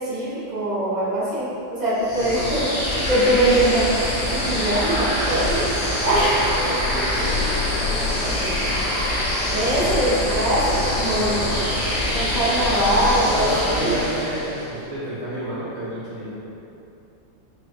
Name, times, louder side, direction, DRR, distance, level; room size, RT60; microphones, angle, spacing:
voice 1, 0.0-2.7 3.1-7.0 9.5-11.4 12.1-13.9, right 1 dB, 35° right, -10 dB, 0.7 m, -22 dB
sound 1, 2.0-14.7, left 1 dB, 70° left, 2.0 m, -24 dB
voice 2, 2.1-2.6 6.1-8.6 10.7-12.2 13.3-16.4, right 1 dB, 65° right, -12 dB, 2.2 m, -31 dB
5.3 x 3.3 x 2.6 m, 2.8 s
omnidirectional pair, 2.1 m